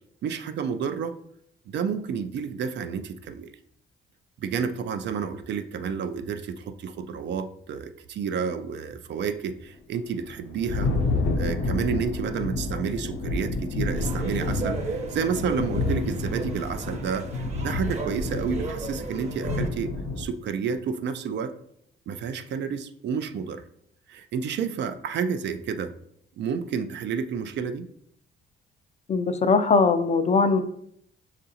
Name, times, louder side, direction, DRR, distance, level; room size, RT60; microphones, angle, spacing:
voice 1, 0.2-1.2 1.7-3.5 4.4-10.9 11.4-21.5 22.1-23.6 24.1-25.9 26.4-27.9, right 6 dB, 65° right, 10 dB, 0.4 m, -30 dB
Thunder, 10.1-20.3, left 3 dB, 70° left, 0.7 m, -29 dB
sound 1, 13.9-19.7, right 3 dB, 35° right, 0.9 m, -36 dB
voice 2, 29.1-30.6, left 4 dB, 35° left, 9 dB, 0.4 m, -20 dB
6.6 x 2.5 x 2.7 m, 0.70 s
cardioid pair, 90°, 20 cm